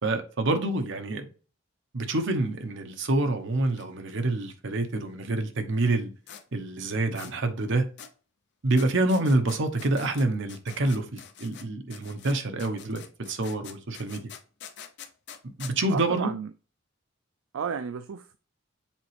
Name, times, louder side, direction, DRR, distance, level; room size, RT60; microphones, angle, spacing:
voice 1, 0.0-1.3 1.9-6.1 6.5-7.9 8.6-14.3 15.6-16.3, right 2 dB, 65° right, 0.9 m, -27 dB
sound 1, 3.6-3.8 4.1-4.2 6.3-6.4 7.2-7.3 8.0-8.1 8.8-11.7 11.9-15.7, left 8 dB, 60° left, 0.7 m, -45 dB
voice 2, 15.9-16.5 17.5-18.4, right 6 dB, 85° right, 0.4 m, -32 dB
7.3 x 4.1 x 3.3 m
head